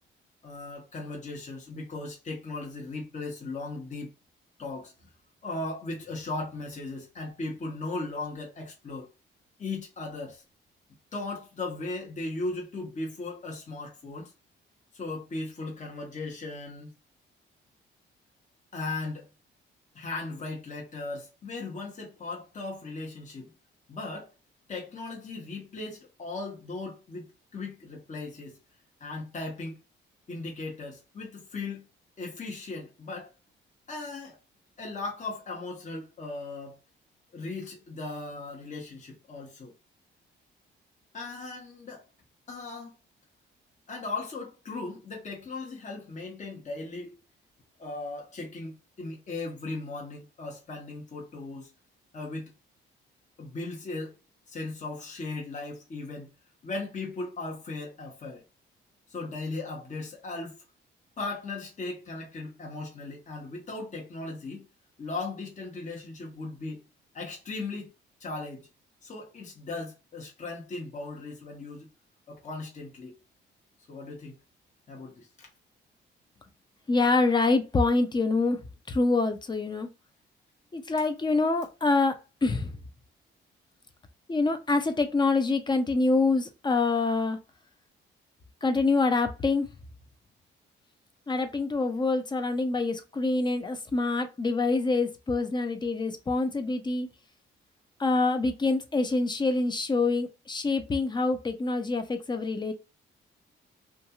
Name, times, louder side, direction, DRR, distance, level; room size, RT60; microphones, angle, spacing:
voice 1, 0.4-4.1 4.6-4.9 5.4-9.1 9.6-10.4 11.1-14.3 14.9-16.9 18.7-19.3 19.9-23.5 23.9-24.3 24.7-28.6 29.0-29.8 30.3-31.9 32.2-33.3 33.9-34.4 34.8-36.8 37.3-39.7 41.1-42.0 42.5-42.9 43.9-47.2 47.8-51.7 52.1-52.5 53.4-54.1 54.5-56.3 56.6-58.4 59.1-60.6 61.2-64.7 65.0-66.8 67.1-67.9 68.2-68.6 69.0-71.9 72.3-73.1 73.9-74.4 74.9-75.5, left 3 dB, 40° left, 1.0 m, -37 dB
voice 2, 76.9-78.6 78.9-79.9 80.7-82.2 82.4-82.8 84.3-87.4 88.6-89.7 91.3-97.1 98.0-102.7, left 3 dB, 20° left, 0.5 m, -26 dB
2.5 x 2.3 x 2.9 m
cardioid pair, 90°, 20 cm